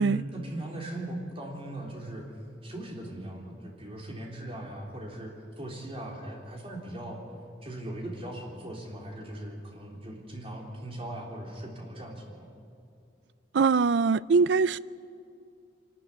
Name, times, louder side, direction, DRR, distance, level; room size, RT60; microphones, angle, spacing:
voice 1, 0.0-2.3 2.6-7.2 7.6-12.5, right 1 dB, 30° right, -1 dB, 3.6 m, -39 dB
voice 2, 13.5-14.8, right 4 dB, 70° right, 19 dB, 0.4 m, -22 dB
25.0 x 13.0 x 9.6 m, 2.6 s
head